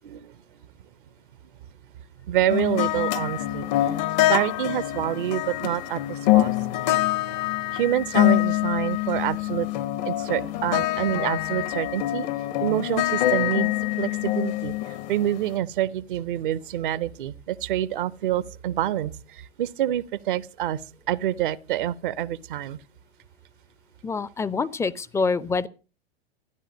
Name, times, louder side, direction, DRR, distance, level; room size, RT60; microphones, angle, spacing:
voice 1, 2.3-3.9 4.3-6.5 7.7-9.7 10.0-12.3 12.6-13.7 14.0-20.8 21.1-22.8, right 12 dB, 55° right, 0.8 m, -27 dB
sound 1, 2.5-15.5, left 15 dB, 45° left, 0.9 m, -25 dB
voice 2, 24.0-25.7, left 4 dB, 10° left, 0.6 m, -26 dB
14.0 x 10.5 x 6.3 m
figure-of-eight pair, 95°, 31 cm